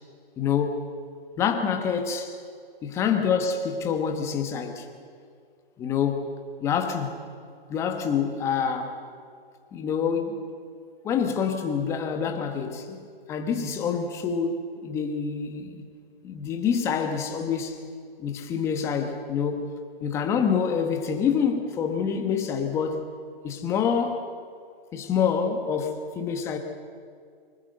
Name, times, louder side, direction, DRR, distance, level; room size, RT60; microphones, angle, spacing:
voice 1, 0.4-0.8 1.4-2.4 2.8-4.9 5.8-6.3 6.6-7.3 7.7-9.0 9.7-10.5 11.0-15.9 16.2-17.8 18.2-23.1 23.4-24.3 24.9-26.6, left 6 dB, 10° left, 1.1 m, -27 dB
24.0 x 20.0 x 7.8 m
hypercardioid pair, 160°, 30 cm